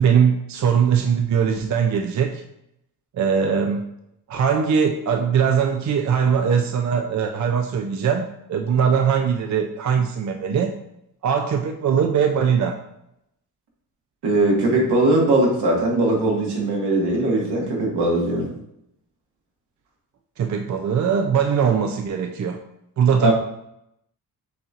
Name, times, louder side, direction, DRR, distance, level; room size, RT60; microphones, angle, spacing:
voice 1, 0.0-2.4 3.2-3.8 4.3-10.7 11.2-12.8 20.4-22.6 23.0-23.3, right 7 dB, 45° right, 4 dB, 0.5 m, -21 dB
voice 2, 14.2-18.5 23.2-23.3, right 2 dB, 70° right, -2 dB, 1.6 m, -20 dB
7.1 x 2.8 x 2.5 m, 0.80 s
cardioid pair, 70°, 41 cm